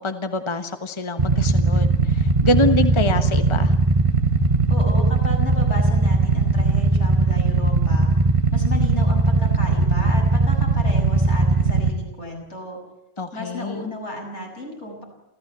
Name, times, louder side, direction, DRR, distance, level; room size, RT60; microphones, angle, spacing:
voice 1, 0.0-3.7 13.2-13.9, left 2 dB, 25° left, 8 dB, 1.3 m, -25 dB
Motorcycle / Idling, 1.2-11.9, right 3 dB, 30° right, 1.4 m, -19 dB
voice 2, 4.7-8.1 8.5-12.8 13.3-15.0, left 1 dB, 75° left, 0 dB, 7.2 m, -34 dB
28.5 x 14.5 x 8.2 m, 0.95 s
omnidirectional pair, 1.2 m